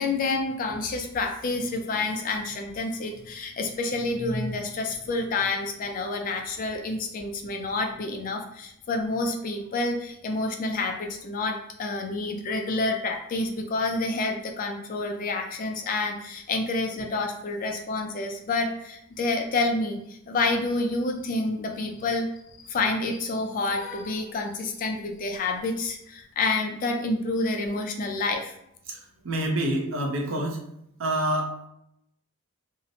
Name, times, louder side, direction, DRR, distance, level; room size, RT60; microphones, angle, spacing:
voice 1, 0.0-22.3 22.6-28.5, left 3 dB, 40° left, 4 dB, 0.3 m, -28 dB
voice 2, 28.9-30.6 31.0-31.7, right 1 dB, 65° right, 1 dB, 0.5 m, -27 dB
2.7 x 2.0 x 2.6 m, 0.76 s
head